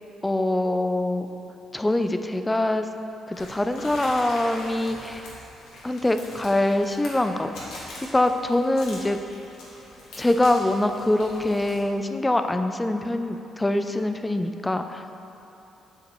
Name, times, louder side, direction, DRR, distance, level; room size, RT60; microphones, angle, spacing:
voice 1, 0.2-1.3 1.7-2.9 3.3-5.3 5.8-7.7 8.1-9.2 10.2-15.0, left 1 dB, 15° left, 7 dB, 0.4 m, -24 dB
sound 1, 3.3-11.8, left 1 dB, 90° left, 1.6 m, -42 dB
8.3 x 6.9 x 3.0 m, 3.0 s
cardioid pair, 90°, 0 cm